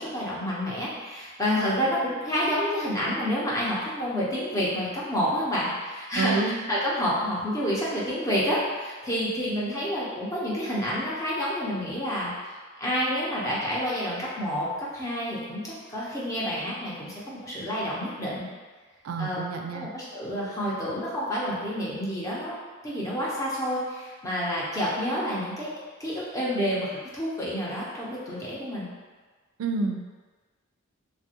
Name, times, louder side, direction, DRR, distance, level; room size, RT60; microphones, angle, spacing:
voice 1, 0.0-6.4 6.7-12.3 12.8-18.5 19.2-19.5 19.7-22.5 22.8-25.7 26.0-28.9, equal, 15° left, -7 dB, 0.6 m, -29 dB
voice 2, 6.1-6.6 19.0-19.9 29.6-30.0, right 4 dB, 80° right, 5 dB, 0.3 m, -28 dB
3.3 x 2.3 x 2.7 m, 1.4 s
head